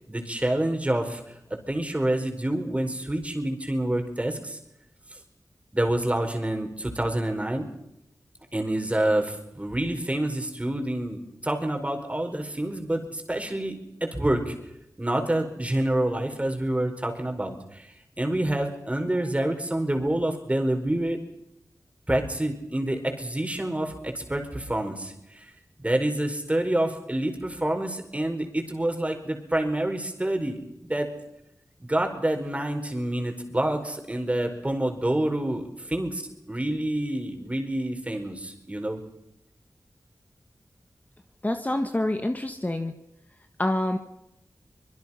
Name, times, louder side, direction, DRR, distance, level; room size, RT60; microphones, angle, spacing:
voice 1, 0.1-4.6 5.7-7.7 8.5-14.5 15.0-21.2 22.1-25.5 25.8-31.1 31.8-36.2 36.5-39.0, right 1 dB, 20° right, 5 dB, 4.7 m, -27 dB
voice 2, 41.4-42.9 43.6-44.0, left 1 dB, 25° left, 6 dB, 1.6 m, -26 dB
25.0 x 22.0 x 5.8 m, 0.83 s
wide cardioid pair, 80°, 7 cm